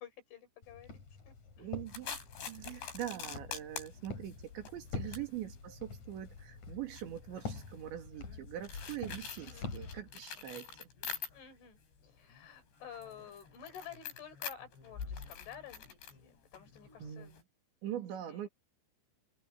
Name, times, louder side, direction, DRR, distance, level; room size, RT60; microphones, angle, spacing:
voice 1, 0.0-1.7 2.6-2.9 5.0-5.3 9.5-9.8 11.3-17.3 17.9-18.0 18.3-18.5, left 8 dB, 90° left, 7.6 m, -52 dB
Walk footsteps, 0.6-10.0, left 4 dB, 40° left, 5.0 m, -46 dB
voice 2, 1.6-2.2 2.5-10.7 17.0-17.3 17.8-18.5, right 11 dB, 75° right, 4.8 m, -43 dB
sound 1, 1.9-11.7 12.0-17.4, left 7 dB, 70° left, 7.4 m, -47 dB
omnidirectional pair, 5.3 m